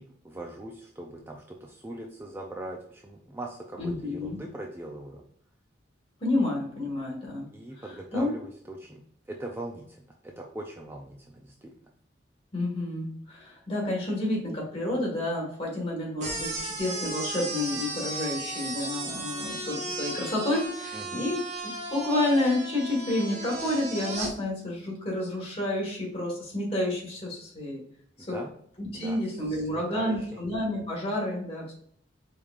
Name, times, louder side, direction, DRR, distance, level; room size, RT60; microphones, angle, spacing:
voice 1, 0.0-5.2 7.5-11.7 20.9-21.2 28.3-28.5 28.9-30.4, right 1 dB, 10° right, 0 dB, 0.3 m, -41 dB
voice 2, 3.8-4.4 6.2-7.5 7.8-8.3 12.5-21.4 21.9-27.8 28.3-28.4 28.8-31.7, left 1 dB, 30° left, -2 dB, 1.5 m, -30 dB
sound 1, 16.2-24.3, right 2 dB, 40° right, 0.9 m, -35 dB
4.6 x 3.5 x 2.4 m, 0.62 s
head